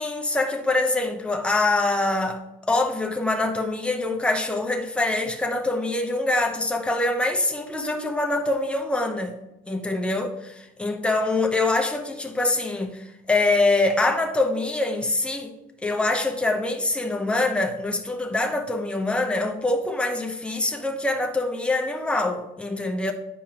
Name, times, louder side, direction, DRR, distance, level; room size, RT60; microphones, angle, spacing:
voice 1, 0.0-9.3 9.7-15.5 15.8-23.1, left 2 dB, 5° left, 0.8 m, -24 dB
9.1 x 4.9 x 2.9 m
cardioid pair, 110°, 17 cm